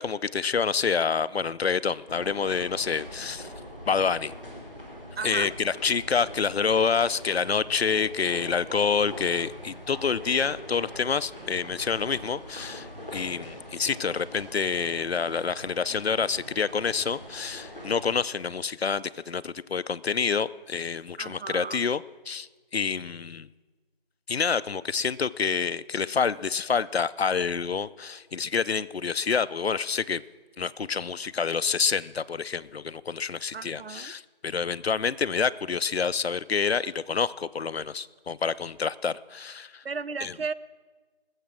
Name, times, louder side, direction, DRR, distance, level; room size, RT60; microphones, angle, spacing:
voice 1, 0.0-3.5 3.9-4.3 5.2-23.5 24.3-30.2 30.6-39.8 40.2-40.3, left 6 dB, 85° left, 18 dB, 0.6 m, -27 dB
sound 1, 2.1-18.1, equal, 10° right, 1.1 m, -43 dB
voice 2, 5.2-5.5 21.2-21.9 33.5-34.1 39.8-40.5, right 5 dB, 75° right, 16 dB, 0.6 m, -34 dB
20.0 x 7.5 x 6.1 m, 1.3 s
figure-of-eight pair, 170°, 30 cm